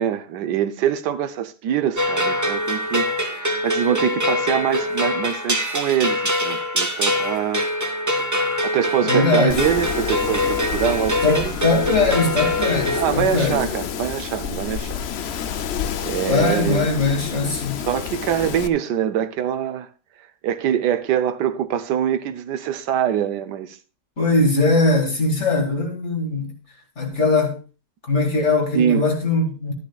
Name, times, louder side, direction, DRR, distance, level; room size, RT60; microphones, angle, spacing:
voice 1, 0.0-3.1 3.3-7.7 8.6-11.6 13.0-15.1 16.0-16.9 17.8-19.9 20.4-23.8 28.7-29.1, right 9 dB, 75° right, 1.3 m, -24 dB
sound 1, 2.0-13.0, left 1 dB, 10° right, 1.0 m, -24 dB
voice 2, 9.0-9.6 11.2-13.7 16.3-17.8 24.2-26.5 27.0-27.6 28.0-29.7, left 3 dB, 40° left, 2.6 m, -20 dB
Wind, 9.5-18.7, left 8 dB, 65° left, 0.6 m, -29 dB
13.5 x 11.0 x 2.3 m
omnidirectional pair, 1.8 m